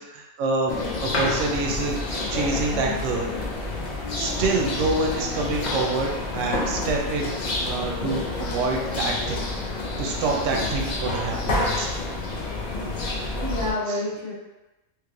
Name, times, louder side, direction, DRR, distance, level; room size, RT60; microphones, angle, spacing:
voice 1, 0.0-1.9 2.3-3.3 4.1-7.4 7.6-9.4 10.0-12.0 13.9-14.0, right 3 dB, 70° right, 0 dB, 0.9 m, -27 dB
sound 1, 0.7-13.7, left 2 dB, 65° left, 0.4 m, -28 dB
voice 2, 12.9-14.3, left 2 dB, ahead, -10 dB, 1.1 m, -30 dB
3.2 x 3.1 x 2.5 m, 1.0 s
omnidirectional pair, 1.4 m